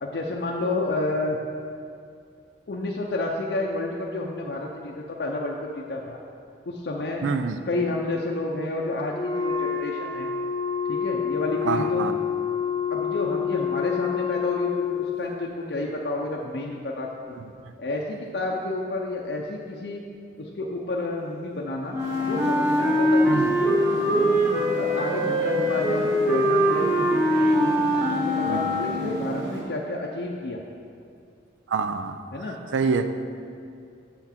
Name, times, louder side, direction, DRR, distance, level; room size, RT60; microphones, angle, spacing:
voice 1, 0.0-1.4 2.7-5.6 5.9-6.2 6.7-7.3 7.7-10.3 10.9-12.1 12.9-17.1 17.8-20.0 20.4-22.0 22.3-24.3 24.7-27.8 28.1-30.6 32.3-32.6, left 2 dB, 60° left, -1 dB, 0.5 m, -30 dB
voice 2, 7.2-7.6 11.6-12.1 23.3-23.5 28.5-28.7 31.7-32.2 32.7-33.1, right 5 dB, 90° right, 9 dB, 0.4 m, -26 dB
Wind instrument woodwind instrument, 9.1-15.2, left 7 dB, 25° left, 0.9 m, -27 dB
Wind instrument woodwind instrument 2, 21.9-29.3, equal, 15° right, 0.7 m, -22 dB
sound 1, 22.0-29.6, right 1 dB, 75° right, 1.3 m, -35 dB
6.0 x 5.8 x 4.3 m, 2.5 s
head